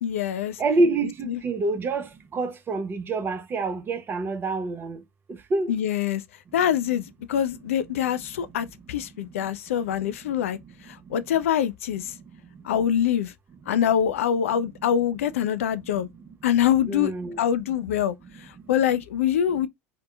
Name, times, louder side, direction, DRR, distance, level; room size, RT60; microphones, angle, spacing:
voice 1, 0.0-0.6 1.2-1.4 5.7-6.2 6.5-10.6 10.9-12.1 12.6-13.3 13.7-16.1 16.4-17.1 17.4-19.7, left 9 dB, 70° left, 0.3 m, -24 dB
voice 2, 0.6-5.0 5.5-5.7 16.9-17.4, right 3 dB, 30° right, 0.6 m, -26 dB
2.7 x 2.1 x 2.4 m
figure-of-eight pair, 75°, 8 cm